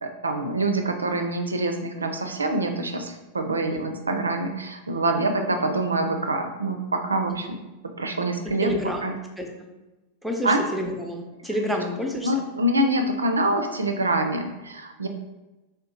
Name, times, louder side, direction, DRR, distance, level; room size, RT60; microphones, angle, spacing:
voice 1, 0.0-7.6 8.0-8.7 9.0-9.1 10.4-10.6 12.2-15.1, right 1 dB, 75° right, 5 dB, 0.4 m, -25 dB
voice 2, 8.6-9.0 9.4-9.7 10.2-12.3, equal, ahead, 1 dB, 0.6 m, -29 dB
3.4 x 2.9 x 3.8 m, 1.1 s
figure-of-eight pair, 90°, 0 cm